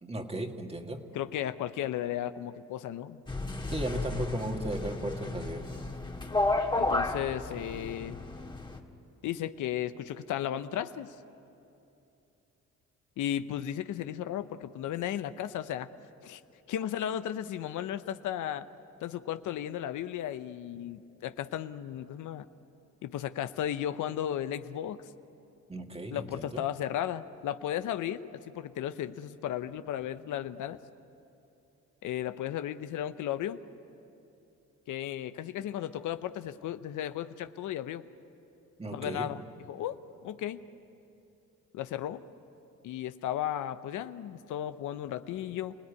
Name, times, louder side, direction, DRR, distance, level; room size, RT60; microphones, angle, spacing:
voice 1, 0.0-1.1 3.7-5.7 25.7-26.6 38.8-39.3, right 1 dB, 20° right, 4 dB, 2.0 m, -36 dB
voice 2, 1.1-3.2 6.8-8.2 9.2-11.1 13.2-15.9 16.2-16.4 16.7-18.7 19.0-22.5 23.0-25.0 26.1-30.8 32.0-33.6 34.9-38.0 38.9-40.6 41.7-42.2 42.8-45.8, left 11 dB, 80° left, 11 dB, 0.9 m, -35 dB
sound 1, 3.3-8.8, left 2 dB, 15° left, 1.9 m, -32 dB
29.5 x 18.0 x 9.7 m, 2.8 s
cardioid pair, 90°, 30 cm